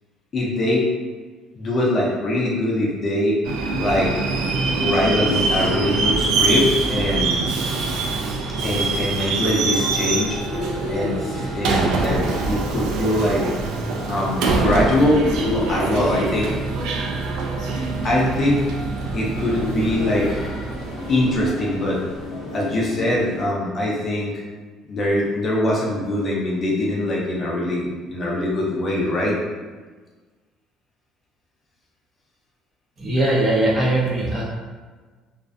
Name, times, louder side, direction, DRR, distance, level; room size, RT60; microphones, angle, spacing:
voice 1, 0.3-0.9 1.6-3.4 3.8-4.1 4.8-7.4 8.6-10.4 10.9-13.4 14.1-16.5 18.0-18.6 19.1-20.4 21.1-22.0 22.5-24.3 24.9-29.4, left 1 dB, 30° left, -4 dB, 0.5 m, -22 dB
Subway metro underground, 3.4-21.9, right 3 dB, 80° right, 0.3 m, -24 dB
sound 1, 9.7-23.4, left 1 dB, 80° left, 0.8 m, -32 dB
voice 2, 33.0-34.4, right 1 dB, 30° right, -4 dB, 0.5 m, -20 dB
2.5 x 2.1 x 2.4 m, 1.4 s
cardioid pair, 150°, 0 cm